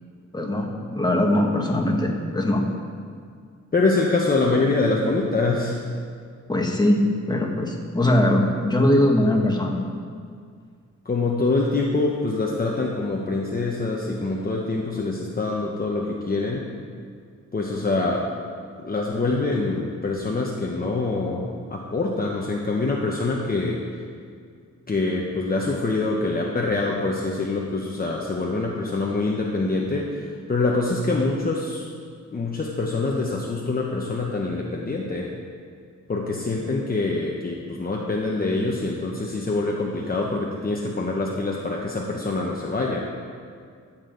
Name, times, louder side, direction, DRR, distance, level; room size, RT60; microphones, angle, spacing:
voice 1, 0.3-2.6 6.5-7.0 7.3-9.8, left 1 dB, 15° left, 0 dB, 1.5 m, -21 dB
voice 2, 3.7-5.8 11.0-16.6 17.5-18.3 18.8-23.8 24.9-30.1 30.5-31.8 32.3-35.3 36.1-43.0, left 3 dB, 30° left, -2 dB, 1.0 m, -25 dB
14.0 x 7.4 x 3.9 m, 2.2 s
cardioid pair, 90°, 30 cm